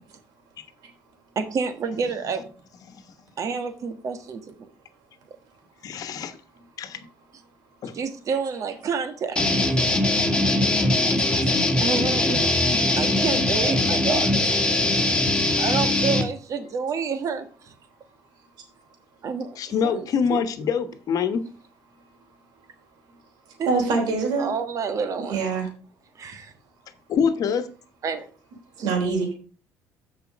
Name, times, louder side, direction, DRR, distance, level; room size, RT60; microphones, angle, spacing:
voice 1, 1.3-2.4 3.4-4.4 7.9-9.8 11.8-12.5 13.0-14.3 15.6-17.4 19.2-20.0 20.3-20.4 23.6-23.7 24.4-25.5 26.2-26.5 28.0-28.3 28.8-28.9, right 5 dB, 50° right, 1.6 m, -29 dB
voice 2, 5.8-6.4 6.8-7.1 7.8-8.0 11.1-11.2 19.6-21.5 27.1-27.7, left 6 dB, 60° left, 1.2 m, -25 dB
sound 1, 9.4-16.2, left 2 dB, 15° left, 1.8 m, -21 dB
voice 3, 23.6-24.5 25.3-25.7 28.8-29.3, right 4 dB, 75° right, 3.2 m, -25 dB
7.0 x 5.1 x 6.2 m
supercardioid pair, 85°, 7 cm